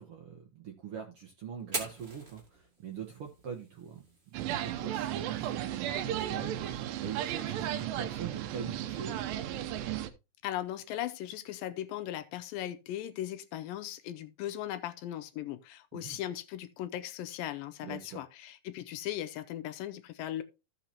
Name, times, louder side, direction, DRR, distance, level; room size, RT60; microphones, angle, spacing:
voice 1, 0.0-9.3 15.9-16.2 17.8-18.2, right 7 dB, 65° right, 1.5 m, -43 dB
Fire, 1.6-9.6, right 2 dB, 20° right, 1.9 m, -47 dB
sound 1, 4.3-10.1, right 12 dB, 85° right, 2.5 m, -34 dB
voice 2, 10.4-20.4, left 12 dB, 85° left, 2.4 m, -38 dB
15.0 x 5.9 x 2.9 m
omnidirectional pair, 4.0 m